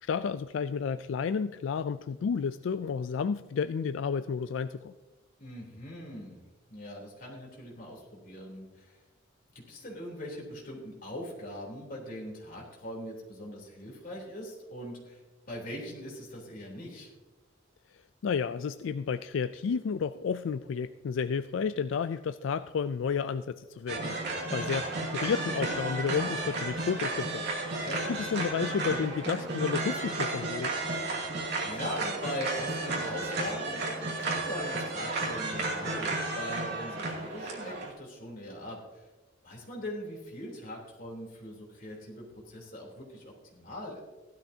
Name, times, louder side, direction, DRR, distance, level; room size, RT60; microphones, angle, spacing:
voice 1, 0.0-4.9 18.2-24.2 24.5-27.5 28.1-30.7, left 6 dB, 80° left, 12 dB, 0.4 m, -31 dB
voice 2, 5.4-6.4 6.7-9.0 9.7-17.1 24.6-25.1 27.8-28.1 31.6-39.1 39.4-44.0, left 1 dB, 45° left, -2 dB, 3.4 m, -41 dB
sound 1, 23.9-37.9, right 2 dB, 60° right, 2.6 m, -33 dB
16.0 x 12.0 x 2.8 m, 1.2 s
head